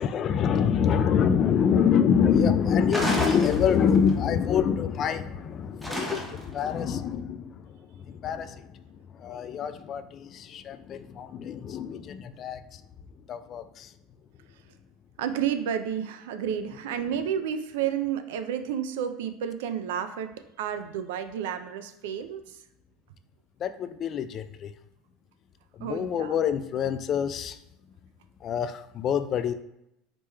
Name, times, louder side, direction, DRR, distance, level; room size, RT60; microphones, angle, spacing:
voice 1, 0.0-8.8 9.1-12.8 13.3-13.9 16.7-16.8 23.6-24.7 25.7-27.6 28.4-29.5, left 7 dB, 45° left, 11 dB, 0.3 m, -26 dB
sound 1, 2.9-4.1 5.8-6.6, equal, 5° right, 0.9 m, -30 dB
voice 2, 15.2-20.3 20.6-22.4 25.8-26.3, right 9 dB, 75° right, 9 dB, 0.4 m, -31 dB
5.1 x 3.1 x 2.2 m, 0.83 s
hypercardioid pair, 85°, 0 cm